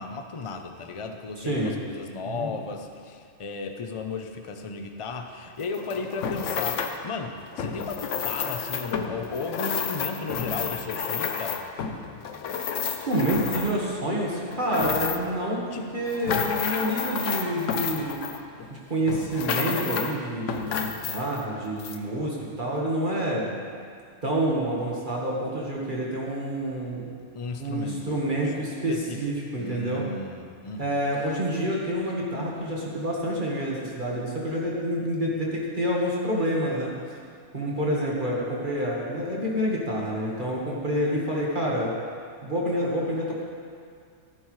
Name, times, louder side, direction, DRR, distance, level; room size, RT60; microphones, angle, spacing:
voice 1, 0.0-11.6 15.7-15.9 27.3-28.5 28.9-29.2 29.6-31.0, left 4 dB, 35° left, 5 dB, 0.6 m, -35 dB
voice 2, 1.4-1.7 2.3-2.5 12.8-15.6 15.9-18.2 18.7-23.5 24.2-27.1 27.6-30.0 30.8-36.9 37.5-41.9 42.4-43.4, right 1 dB, 40° right, -4 dB, 1.6 m, -28 dB
sound 1, 5.6-7.0 7.5-13.9 14.4-15.4 15.9-18.7 19.1-20.2 20.5-21.4 21.8-22.0, left 6 dB, 70° left, 1.0 m, -30 dB
15.0 x 11.0 x 3.2 m, 2.2 s
omnidirectional pair, 1.4 m